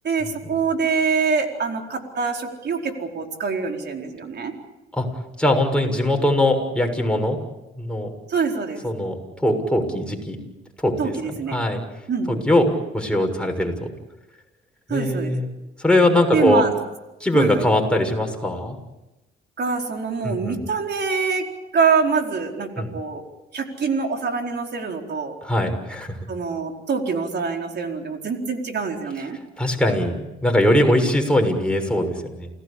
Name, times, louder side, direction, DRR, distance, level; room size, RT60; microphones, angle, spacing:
voice 1, 0.0-4.5 8.3-8.8 11.0-11.6 12.1-12.4 14.9-15.3 16.3-16.7 17.3-17.6 19.6-21.4 21.7-23.2 23.5-25.3 26.3-29.4, right 5 dB, 55° right, 3 dB, 4.6 m, -24 dB
voice 2, 5.4-7.4 7.8-8.1 8.8-9.1 9.4-10.4 10.8-11.1 11.5-11.8 12.3-12.7 12.9-13.9 14.9-15.5 15.8-16.6 17.2-18.8 20.2-20.6 22.8-22.9 25.4-26.3 29.6-32.5, left 1 dB, 5° left, 2 dB, 6.6 m, -21 dB
29.0 x 17.5 x 8.7 m, 1.0 s
cardioid pair, 70°, 20 cm